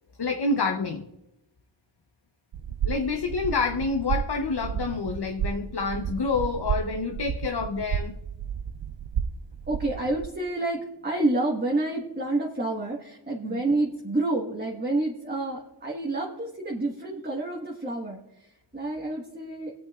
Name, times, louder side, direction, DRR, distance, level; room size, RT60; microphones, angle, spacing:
voice 1, 0.2-1.1 2.8-8.2 13.4-13.6, left 4 dB, 50° left, 5 dB, 0.8 m, -28 dB
sound 1, 2.5-10.3, right 8 dB, 65° right, 0.6 m, -32 dB
voice 2, 9.7-19.7, right 2 dB, 20° right, -3 dB, 1.5 m, -29 dB
20.5 x 8.7 x 2.4 m, 0.92 s
wide cardioid pair, 75°, 49 cm